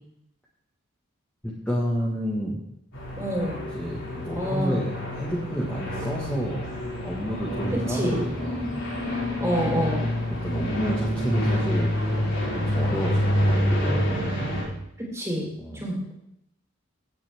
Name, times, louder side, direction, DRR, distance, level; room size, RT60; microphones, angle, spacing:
voice 1, 1.4-2.6 3.7-6.6 7.0-8.8 10.3-12.1 12.5-14.1 15.6-15.9, equal, 5° left, -5 dB, 1.6 m, -30 dB
sound 1, 2.9-14.6, equal, 80° left, 5.5 m, -27 dB
voice 2, 3.2-3.6 4.3-4.8 7.7-8.2 9.4-10.0 15.0-15.5 15.7-16.1, equal, 15° right, -3 dB, 3.8 m, -27 dB
16.5 x 8.7 x 3.5 m, 0.76 s
head